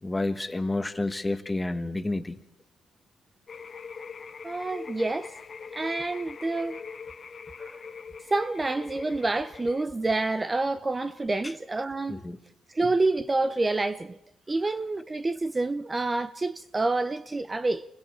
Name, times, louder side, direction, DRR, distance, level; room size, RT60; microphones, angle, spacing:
voice 1, 0.0-2.4 11.4-11.5 12.1-12.4, left 2 dB, 15° left, 1.3 m, -30 dB
sound 1, 3.5-9.8, left 5 dB, 40° left, 0.7 m, -42 dB
voice 2, 4.4-5.3 5.7-6.8 7.6-7.8 8.3-12.2 12.7-14.2 14.5-17.9, right 2 dB, 20° right, 0.7 m, -28 dB
28.0 x 21.5 x 4.4 m
cardioid pair, 90°, 0 cm